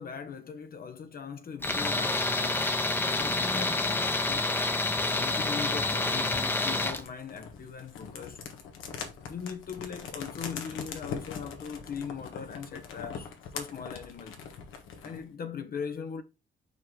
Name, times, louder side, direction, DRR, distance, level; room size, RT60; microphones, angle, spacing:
voice 1, 0.0-2.7 3.1-4.5 5.1-8.4 9.3-14.4 15.0-16.2, left 6 dB, 50° left, 0.9 m, -40 dB
Tools, 1.6-7.0, left 2 dB, 10° left, 0.9 m, -28 dB
sound 1, 5.2-15.3, left 6 dB, 90° left, 1.5 m, -42 dB
5.3 x 4.8 x 3.7 m
cardioid pair, 90°, 20 cm